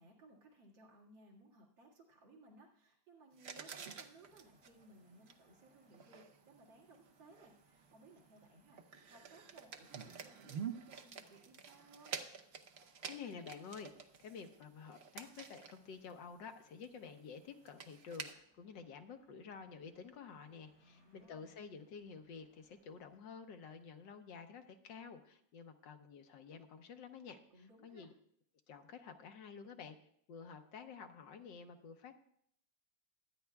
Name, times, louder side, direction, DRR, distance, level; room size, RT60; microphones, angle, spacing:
voice 1, 0.0-12.2 20.8-21.5 27.5-28.1, right 2 dB, 85° right, -3 dB, 2.8 m, -62 dB
sound 1, 3.4-16.3 16.6-16.8 17.1-17.2 17.6-18.3, right 6 dB, 60° right, 0.7 m, -49 dB
sound 2, 4.2-23.2, equal, 5° right, 4.6 m, -75 dB
voice 2, 13.0-13.9 14.2-28.1 28.7-30.0 30.3-32.1, left 6 dB, 75° left, 6 dB, 1.6 m, -51 dB
23.0 x 9.6 x 2.3 m, 0.69 s
omnidirectional pair, 2.0 m